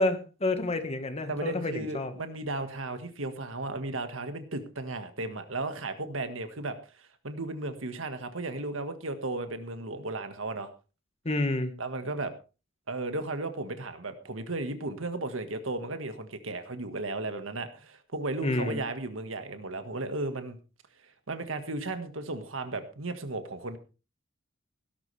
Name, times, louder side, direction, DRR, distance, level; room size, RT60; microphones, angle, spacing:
voice 1, 0.0-2.1 11.2-11.7 18.4-18.8, left 2 dB, 30° left, 9 dB, 1.5 m, -29 dB
voice 2, 1.3-10.7 11.8-12.3 12.9-20.6 21.0-23.8, right 2 dB, 85° right, 8 dB, 1.7 m, -35 dB
17.0 x 12.0 x 3.4 m, 0.33 s
head